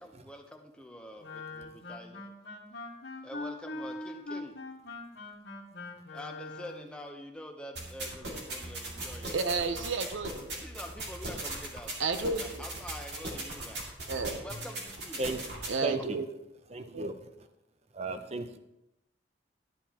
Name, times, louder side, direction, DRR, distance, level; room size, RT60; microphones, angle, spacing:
voice 1, 0.0-2.2 3.2-4.6 6.1-9.3 9.7-9.8 10.6-12.0 12.4-13.9 14.4-15.2 15.9-16.1, left 1 dB, 5° left, 2 dB, 0.8 m, -46 dB
Wind instrument woodwind instrument, 1.2-7.0, left 2 dB, 65° left, 1.6 m, -42 dB
sound 1, 7.7-15.7, right 2 dB, 60° right, 2.3 m, -39 dB
voice 2, 9.3-10.5 12.0-12.7 14.1-14.4 15.7-16.2 16.8-17.2, right 4 dB, 85° right, 9 dB, 0.7 m, -32 dB
voice 3, 15.8-16.2 16.7-17.2 17.9-18.6, right 2 dB, 35° right, 8 dB, 0.6 m, -34 dB
12.5 x 9.5 x 2.9 m, 0.90 s
head